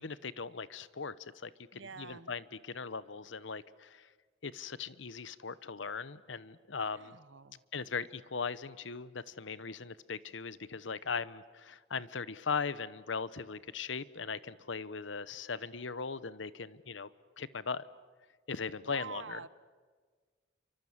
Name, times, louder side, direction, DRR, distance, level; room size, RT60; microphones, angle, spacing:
voice 1, 0.0-4.1 4.4-7.2 7.7-17.1 17.4-17.9 18.5-19.5, left 5 dB, 70° left, 17 dB, 0.9 m, -39 dB
voice 2, 1.7-2.3 6.8-7.6 18.8-19.5, right 5 dB, 70° right, 16 dB, 1.0 m, -47 dB
29.0 x 24.5 x 7.3 m, 1.5 s
head